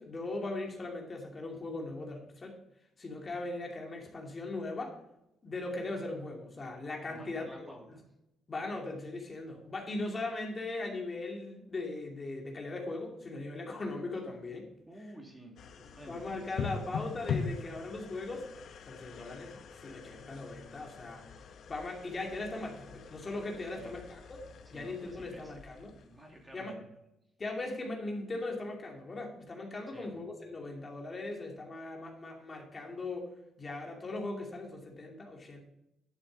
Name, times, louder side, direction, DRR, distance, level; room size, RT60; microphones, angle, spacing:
voice 1, 0.0-2.6 3.0-4.9 5.4-8.0 8.5-14.7 16.1-18.5 18.9-19.5 19.8-21.3 21.7-24.4 24.7-25.9 26.5-26.8 27.4-33.3 33.6-35.6, left 2 dB, 30° left, 0 dB, 2.5 m, -39 dB
voice 2, 7.0-8.0 14.9-16.9 23.8-24.0 24.7-25.5 26.1-26.8 29.9-30.1, equal, 15° right, 0 dB, 2.5 m, -52 dB
sound 1, 15.6-26.6, left 6 dB, 60° left, 1.0 m, -43 dB
11.0 x 7.1 x 4.0 m, 0.85 s
cardioid pair, 100°, 0 cm